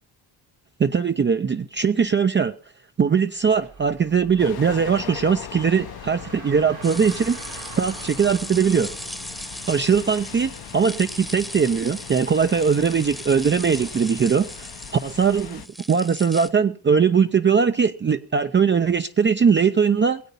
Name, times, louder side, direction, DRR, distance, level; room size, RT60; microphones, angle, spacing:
voice 1, 0.8-2.5 3.0-8.9 9.7-15.6 15.9-20.2, right 6 dB, 25° right, 0.5 m, -20 dB
Car, 3.4-11.9, right 6 dB, 85° right, 2.9 m, -46 dB
sound 1, 4.4-15.7, left 10 dB, 60° left, 0.9 m, -40 dB
sound 2, 6.8-16.5, equal, ahead, 1.0 m, -38 dB
20.5 x 8.2 x 5.3 m
cardioid pair, 75°, 43 cm